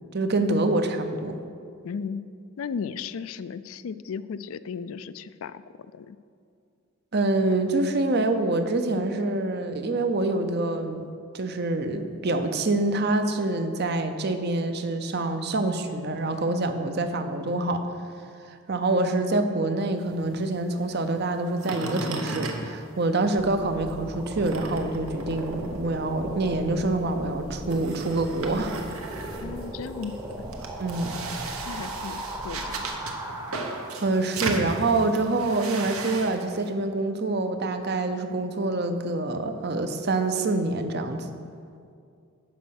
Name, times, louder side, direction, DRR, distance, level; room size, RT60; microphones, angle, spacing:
voice 1, 0.1-1.4 7.1-11.0 11.3-17.9 18.5-28.8 30.8-31.2 34.0-41.3, right 2 dB, 50° right, 8 dB, 0.7 m, -26 dB
voice 2, 1.8-2.2 2.6-5.6 5.9-6.2 29.4-30.1 31.7-32.9, left 6 dB, 70° left, 15 dB, 0.4 m, -35 dB
sound 1, 20.0-23.5 23.8-36.7, right 3 dB, 75° right, 1.1 m, -36 dB
sound 2, 23.3-34.3, right 1 dB, 15° right, 0.8 m, -37 dB
11.5 x 5.2 x 6.5 m, 2.4 s
head